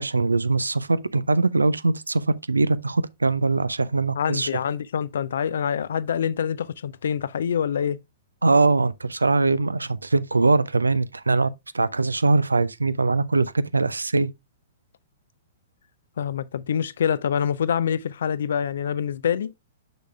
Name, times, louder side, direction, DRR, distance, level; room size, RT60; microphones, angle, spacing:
voice 1, 0.0-4.5 8.4-14.3, right 3 dB, 80° right, 0.4 m, -22 dB
voice 2, 4.2-8.0 16.2-19.5, left 8 dB, 60° left, 0.4 m, -25 dB
6.6 x 6.2 x 2.3 m
figure-of-eight pair, 110°, 0 cm